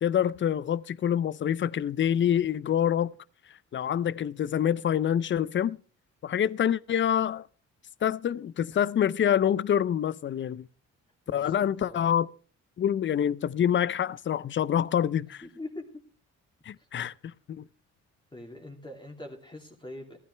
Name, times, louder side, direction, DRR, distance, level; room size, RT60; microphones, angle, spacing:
voice 1, 0.0-3.1 3.7-5.8 6.2-7.5 8.0-10.7 11.3-12.3 12.8-15.4 16.7-17.1 17.5-17.6, left 9 dB, 40° left, 0.5 m, -26 dB
voice 2, 11.3-12.0 15.4-15.8 17.0-17.1 18.3-20.2, left 1 dB, 15° left, 2.6 m, -43 dB
15.0 x 12.0 x 3.3 m
cardioid pair, 90°, 30 cm